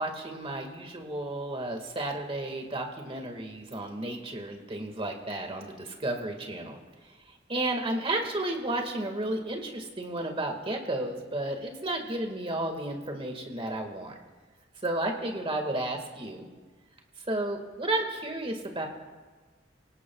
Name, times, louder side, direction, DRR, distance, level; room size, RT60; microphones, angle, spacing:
voice 1, 0.0-6.8 7.5-14.1 14.8-16.5 17.3-18.9, right 1 dB, 30° right, 3 dB, 1.9 m, -32 dB
26.5 x 18.0 x 2.4 m, 1.4 s
head